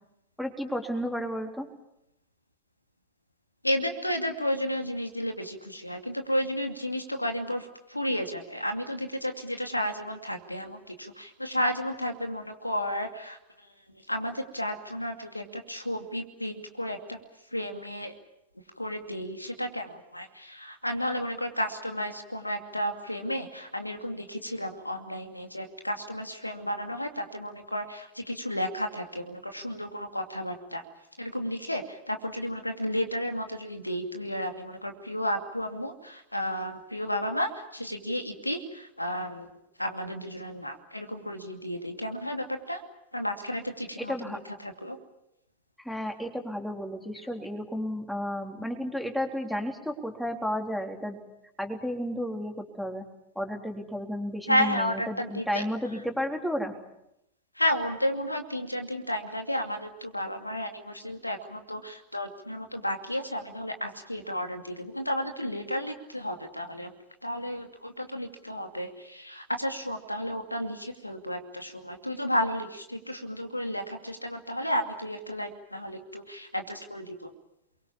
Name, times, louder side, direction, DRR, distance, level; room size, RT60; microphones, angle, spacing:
voice 1, 0.4-1.7 44.0-44.4 45.8-51.2 51.6-53.0 53.4-56.7, equal, ahead, 3 dB, 3.7 m, -32 dB
voice 2, 3.6-13.4 13.9-17.2 17.5-18.1 18.8-30.8 31.2-39.5 39.8-42.8 43.1-45.0 54.5-55.7 57.5-66.9 67.2-77.3, equal, 85° left, 5 dB, 2.5 m, -32 dB
29.5 x 23.0 x 7.2 m, 0.85 s
figure-of-eight pair, 90°, 0 cm